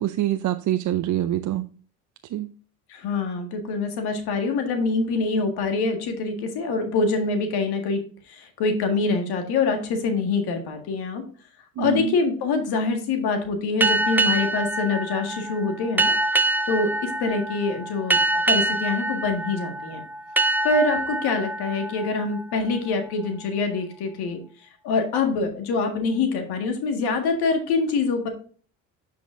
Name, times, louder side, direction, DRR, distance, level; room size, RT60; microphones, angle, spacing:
voice 1, 0.0-1.6 2.3-2.5 11.8-12.1, right 13 dB, 50° right, 0.5 m, -25 dB
voice 2, 2.9-8.0 8.3-11.2 11.8-16.1 16.7-18.2 18.5-20.0 20.6-24.4 24.8-28.3, left 4 dB, 70° left, 1.8 m, -25 dB
sound 1, 13.8-23.1, right 2 dB, 5° right, 0.5 m, -25 dB
9.8 x 5.2 x 2.5 m
supercardioid pair, 70°, 40 cm